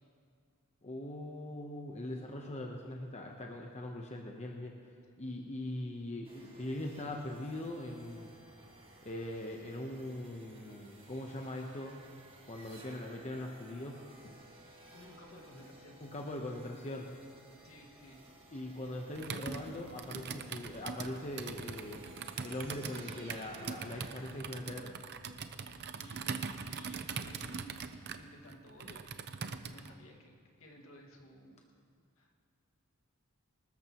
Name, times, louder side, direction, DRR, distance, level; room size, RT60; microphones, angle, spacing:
voice 1, 0.8-4.7 5.2-8.3 9.0-12.0 12.5-14.0 16.0-17.1 18.5-22.0 22.4-25.0, left 1 dB, 35° left, 1 dB, 1.0 m, -41 dB
sound 1, 6.2-24.6, right 1 dB, 25° right, 2.3 m, -57 dB
voice 2, 14.9-16.0 17.6-18.2 25.9-30.3 30.6-31.6 32.2-32.3, equal, 70° left, 0 dB, 2.1 m, -55 dB
Computer keyboard, 19.2-29.9, right 5 dB, 55° right, 0.7 m, -42 dB
25.0 x 13.5 x 3.1 m, 2.3 s
head